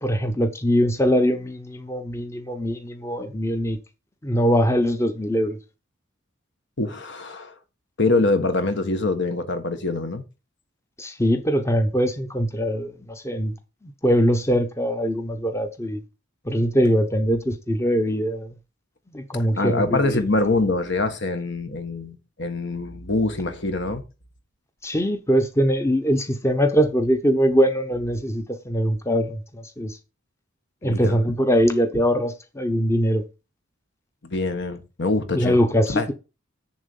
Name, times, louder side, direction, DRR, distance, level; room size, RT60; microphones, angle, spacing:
voice 1, 0.0-3.8 4.2-5.6 11.0-13.5 13.8-16.0 16.4-18.5 19.1-20.2 24.8-30.0 30.8-33.2 35.3-36.1, equal, 15° left, 0.8 m, -22 dB
voice 2, 6.8-7.5 8.0-10.2 19.5-24.0 30.8-31.2 34.2-35.6 35.9-36.1, left 2 dB, 60° left, 1.4 m, -24 dB
7.2 x 7.2 x 5.4 m
head